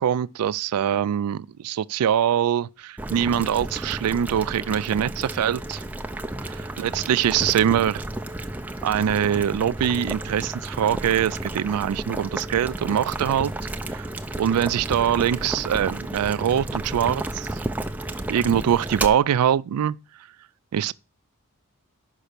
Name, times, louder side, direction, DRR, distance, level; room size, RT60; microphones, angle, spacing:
voice 1, 0.0-5.8 6.4-8.0 8.8-13.5 13.9-14.1 14.4-17.5 18.3-20.0 20.7-20.9, right 9 dB, 85° right, 0.3 m, -23 dB
Boiling, 3.0-19.1, right 1 dB, 5° right, 0.4 m, -32 dB
5.8 x 5.3 x 6.6 m
head